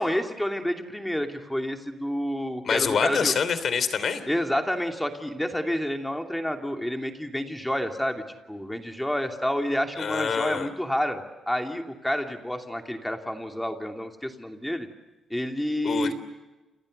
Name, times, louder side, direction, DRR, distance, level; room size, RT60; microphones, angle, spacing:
voice 1, 0.0-3.3 4.3-14.9 15.3-16.1, equal, 5° left, 4 dB, 2.8 m, -29 dB
voice 2, 2.6-4.2 10.0-10.7 15.8-16.1, left 6 dB, 50° left, 13 dB, 3.1 m, -26 dB
29.5 x 29.5 x 6.7 m, 1.1 s
cardioid pair, 140°, 0 cm